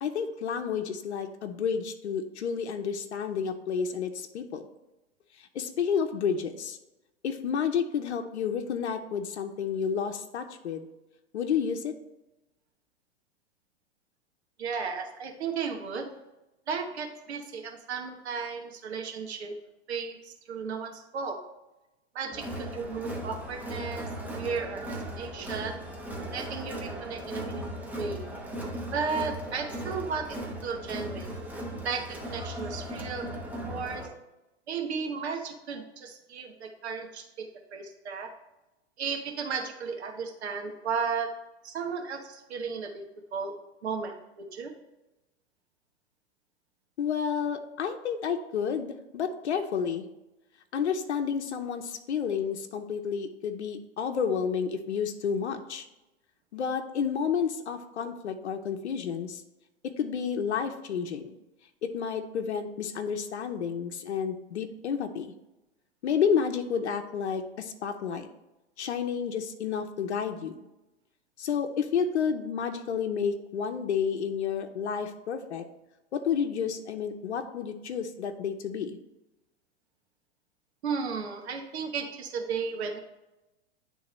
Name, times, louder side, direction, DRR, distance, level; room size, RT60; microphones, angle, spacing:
voice 1, 0.0-4.7 5.4-6.8 7.2-10.9 11.3-11.9 47.0-50.1 50.7-55.9 56.5-59.4 59.8-61.3 61.8-65.3 66.0-68.3 68.8-70.7 71.4-75.6 76.1-79.0, left 7 dB, 80° left, 6 dB, 0.8 m, -30 dB
voice 2, 14.6-16.1 16.7-19.5 19.9-21.4 22.1-24.1 24.4-25.8 26.3-28.2 28.9-31.3 31.8-33.4 33.6-34.1 34.7-38.3 39.0-41.3 41.6-43.0 43.3-43.5 43.8-44.7 80.8-83.0, right 5 dB, 75° right, 3 dB, 1.2 m, -34 dB
Crowd, 22.3-34.1, right 1 dB, 5° right, 0.9 m, -37 dB
10.5 x 3.5 x 3.1 m, 0.98 s
hypercardioid pair, 115°, 33 cm